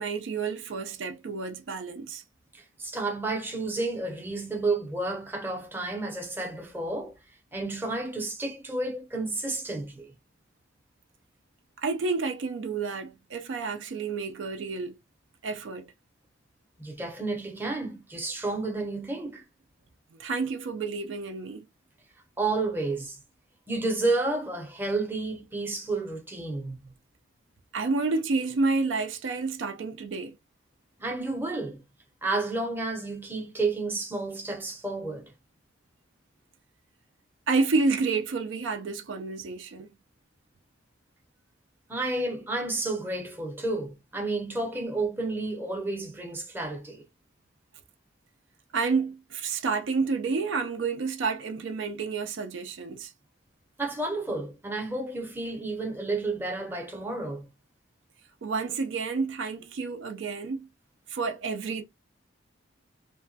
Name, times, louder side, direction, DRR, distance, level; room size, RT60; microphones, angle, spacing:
voice 1, 0.0-2.2 11.8-15.0 15.4-15.9 20.2-21.7 27.7-30.4 37.5-39.9 48.7-53.1 58.4-60.7 61.1-61.8, right 4 dB, 65° right, 0.4 m, -29 dB
voice 2, 2.5-7.1 7.5-10.1 16.8-19.4 22.4-23.2 23.7-26.9 31.0-31.8 32.2-35.3 41.9-47.0 53.8-57.4, right 2 dB, 10° right, 0.6 m, -31 dB
2.9 x 2.2 x 2.7 m
head